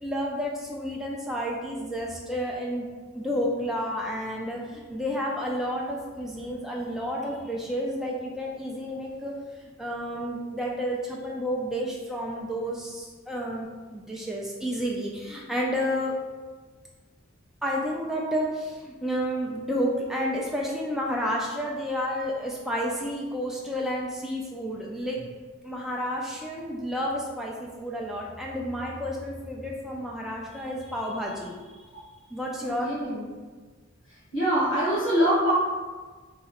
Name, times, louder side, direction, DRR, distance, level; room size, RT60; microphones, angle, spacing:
voice 1, 0.0-2.9 3.1-9.3 9.6-16.2 17.6-25.3 25.6-31.6 32.3-32.9, equal, ahead, -3 dB, 0.3 m, -31 dB
voice 2, 32.6-33.2 34.3-35.5, equal, 65° left, -8 dB, 1.2 m, -24 dB
3.0 x 2.7 x 4.3 m, 1.4 s
head